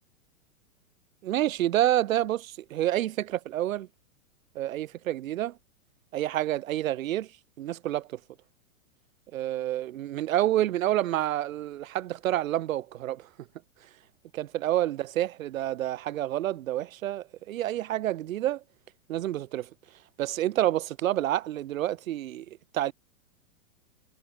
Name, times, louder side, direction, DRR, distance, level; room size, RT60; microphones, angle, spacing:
voice 1, 1.2-3.9 4.5-5.5 6.1-7.3 7.6-8.1 9.3-13.2 14.3-18.6 19.1-19.7 20.2-22.4 22.7-22.9, right 13 dB, 70° right, 4.9 m, -28 dB
hypercardioid pair, 135°, 42 cm